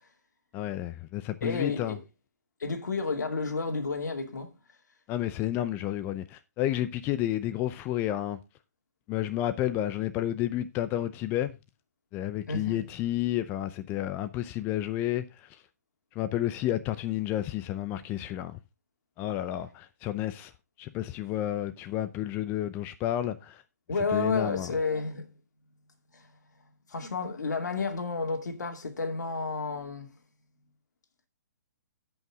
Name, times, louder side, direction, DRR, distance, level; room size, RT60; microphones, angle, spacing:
voice 1, 0.5-2.0 5.1-8.4 9.1-11.6 12.1-15.6 16.2-18.6 19.2-20.5 20.8-23.6 24.1-24.7, left 13 dB, 20° left, 0.6 m, -31 dB
voice 2, 1.4-2.0 2.6-4.5 12.5-12.8 23.9-25.3 26.1-26.3 26.9-30.1, left 4 dB, 80° left, 2.4 m, -31 dB
15.5 x 5.6 x 3.6 m
hypercardioid pair, 145°, 9 cm